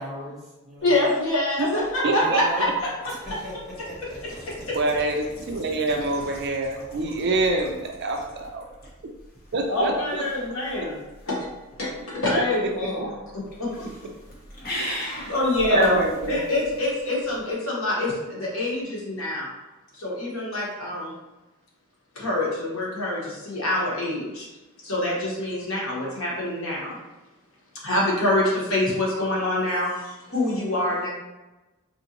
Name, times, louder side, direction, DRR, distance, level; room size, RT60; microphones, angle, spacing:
voice 1, 0.0-1.0 2.0-2.7 3.3-4.9, equal, ahead, -9 dB, 1.1 m, -38 dB
voice 2, 0.8-3.1 9.7-10.9 11.3-11.4 11.8-13.9 15.3-16.0 16.3-19.5 20.0-21.1 22.1-24.5 24.8-27.0 27.8-31.1, left 1 dB, 65° left, -4 dB, 1.2 m, -25 dB
sound 1, 0.8-17.5, left 1 dB, 45° left, 1.0 m, -42 dB
voice 3, 2.0-2.4 4.7-8.6 9.5-10.2 14.7-15.4 15.7-16.4, right 2 dB, 50° right, 3 dB, 0.4 m, -26 dB
4.3 x 2.8 x 2.7 m, 1.1 s
head